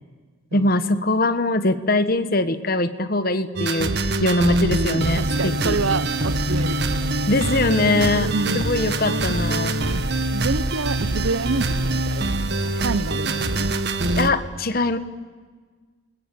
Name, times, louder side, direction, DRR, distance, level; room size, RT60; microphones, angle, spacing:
voice 1, 0.5-5.7 7.3-9.7 14.2-15.0, left 2 dB, 45° left, 10 dB, 1.4 m, -22 dB
sound 1, 3.6-14.3, right 2 dB, 55° right, 1.4 m, -24 dB
voice 2, 4.7-7.0 7.9-8.7 9.9-13.7, right 3 dB, 80° right, 15 dB, 0.8 m, -28 dB
28.5 x 20.0 x 8.6 m, 1.5 s
head